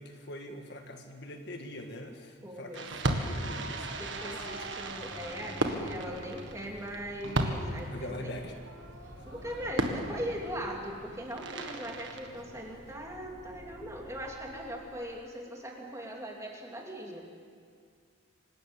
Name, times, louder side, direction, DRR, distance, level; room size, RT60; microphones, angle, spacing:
voice 1, 0.0-4.3 7.9-8.5, left 1 dB, 50° left, 4 dB, 1.8 m, -43 dB
voice 2, 2.4-2.9 4.0-8.4 9.2-17.2, equal, 15° right, 0 dB, 2.7 m, -40 dB
Fireworks, 2.7-13.0, right 1 dB, 60° right, 1.9 m, -36 dB
sound 1, 4.0-15.3, equal, 20° left, 1.3 m, -52 dB
26.0 x 13.5 x 8.9 m, 2.2 s
head